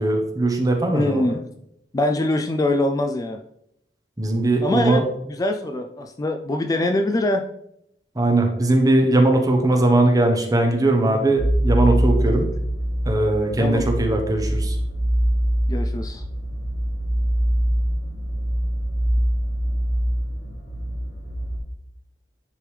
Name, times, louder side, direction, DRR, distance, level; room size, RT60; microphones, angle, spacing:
voice 1, 0.0-1.4 4.2-5.0 8.2-12.5 13.0-14.8, right 2 dB, 20° right, 3 dB, 0.9 m, -20 dB
voice 2, 0.9-1.4 1.9-3.4 4.6-7.5 12.3-12.4 13.6-13.9 15.7-16.2, left 1 dB, 20° left, 4 dB, 0.3 m, -23 dB
sound 1, 11.4-21.6, equal, 75° left, 1.2 m, -23 dB
9.9 x 3.5 x 3.2 m, 0.78 s
head